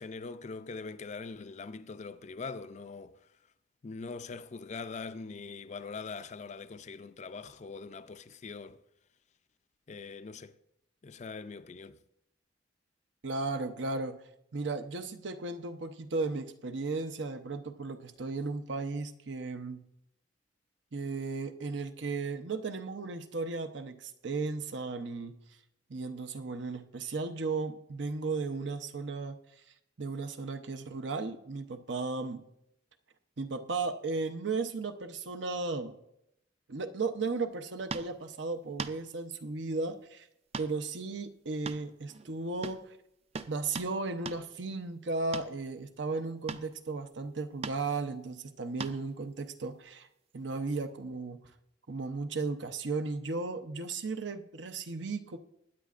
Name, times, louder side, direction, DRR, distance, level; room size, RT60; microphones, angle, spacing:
voice 1, 0.0-3.2 3.8-8.8 9.9-10.5 11.0-12.0, left 4 dB, 40° left, 0.4 m, -42 dB
voice 2, 13.2-14.2 14.5-19.8 20.9-25.3 25.9-29.3 30.0-32.4 33.4-36.0 36.7-40.3 40.6-42.8 43.5-50.1 50.3-51.4 51.9-55.4, right 3 dB, 70° right, 0.8 m, -35 dB
sound 1, 37.9-38.1 38.8-39.0 40.5-40.7 41.0-41.1 41.7-42.3 42.6-42.8 43.3-43.9 44.3-44.4 45.3-45.5 46.5-46.7 47.6-47.8 48.8-49.0 50.7-50.8, right 4 dB, 35° right, 0.4 m, -39 dB
21.0 x 9.4 x 2.5 m
head